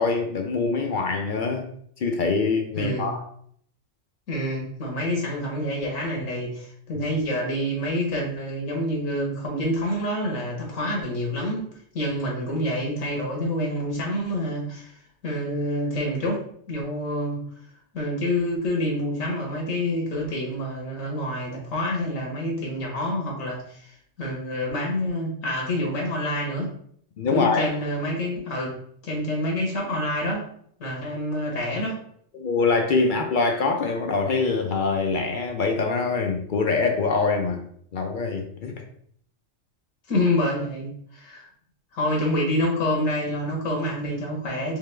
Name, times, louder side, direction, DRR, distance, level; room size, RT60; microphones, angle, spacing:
voice 1, 0.0-1.6 2.0-3.2 27.2-27.7 32.3-37.7 37.9-38.7, left 4 dB, 60° left, 3 dB, 0.5 m, -24 dB
voice 2, 2.7-3.1 4.3-17.4 17.9-26.7 27.3-30.4 30.8-32.0 40.1-41.5 41.9-44.8, left 1 dB, 80° left, -1 dB, 1.5 m, -27 dB
3.6 x 3.2 x 3.3 m, 0.64 s
omnidirectional pair, 1.3 m